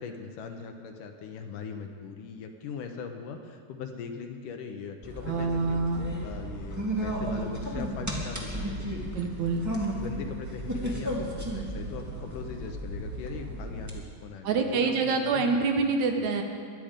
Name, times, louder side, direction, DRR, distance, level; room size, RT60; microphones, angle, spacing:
voice 1, 0.0-5.8 6.2-9.1 9.9-15.5 16.2-16.3, left 6 dB, 75° left, 5 dB, 2.4 m, -40 dB
sound 1, 5.0-13.9, right 1 dB, 10° right, 0.9 m, -34 dB
voice 2, 5.3-6.1 9.1-9.6 14.4-16.4, right 4 dB, 70° right, 4 dB, 2.0 m, -26 dB
22.5 x 9.2 x 5.1 m, 2.1 s
omnidirectional pair, 3.9 m